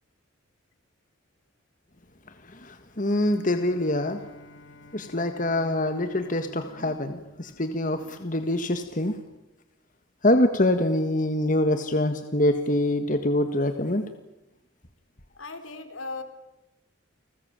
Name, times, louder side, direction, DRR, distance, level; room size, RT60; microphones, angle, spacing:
voice 1, 2.3-4.2 4.9-9.2 10.2-14.0, left 1 dB, 40° left, 8 dB, 1.7 m, -25 dB
Bowed string instrument, 3.1-8.4, left 1 dB, 55° left, 3.6 m, -52 dB
voice 2, 15.4-16.2, left 3 dB, 80° left, 8 dB, 4.0 m, -37 dB
30.0 x 20.5 x 8.9 m, 0.96 s
head